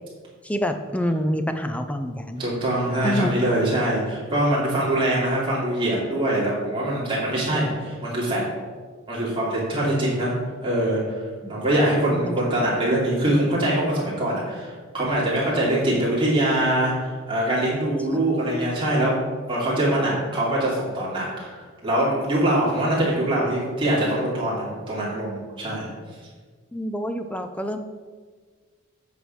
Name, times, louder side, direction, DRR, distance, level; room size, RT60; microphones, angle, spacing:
voice 1, 0.4-2.5 3.0-3.3 11.4-11.5 12.1-12.4 18.1-18.2 26.7-27.8, equal, 5° left, 7 dB, 0.4 m, -27 dB
voice 2, 2.4-8.4 9.1-10.3 10.6-11.0 11.5-19.1 19.5-25.9, right 1 dB, 25° right, -6 dB, 2.7 m, -23 dB
8.1 x 5.0 x 6.2 m, 1.5 s
head